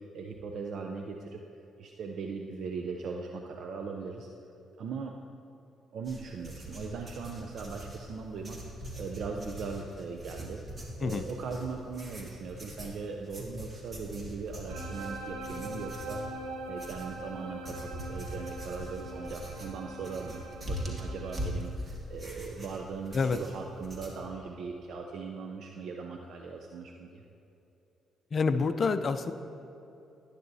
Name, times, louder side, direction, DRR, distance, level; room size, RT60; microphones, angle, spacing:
voice 1, 0.0-1.4 1.8-4.3 4.8-5.2 5.9-8.6 9.0-10.6 11.0-16.2 16.6-27.2, right 5 dB, 65° right, 2 dB, 0.6 m, -39 dB
sound 1, 6.0-24.1, equal, 30° right, 1.8 m, -42 dB
sound 2, 14.7-21.5, right 1 dB, 90° right, 1.0 m, -42 dB
voice 2, 28.3-29.3, left 4 dB, 45° left, 10 dB, 0.5 m, -27 dB
11.5 x 10.5 x 2.7 m, 2.9 s
cardioid pair, 75°, 0 cm